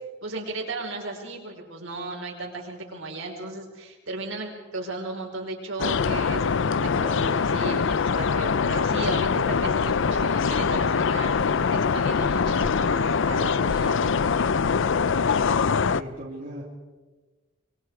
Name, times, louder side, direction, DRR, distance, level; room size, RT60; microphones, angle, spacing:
voice 1, 0.2-14.1, right 2 dB, 70° right, 0 dB, 5.0 m, -35 dB
sound 1, 5.8-16.0, left 5 dB, 65° left, 0.6 m, -23 dB
voice 2, 15.8-16.6, right 1 dB, 45° right, -3 dB, 3.4 m, -38 dB
26.5 x 24.0 x 4.9 m, 1.3 s
head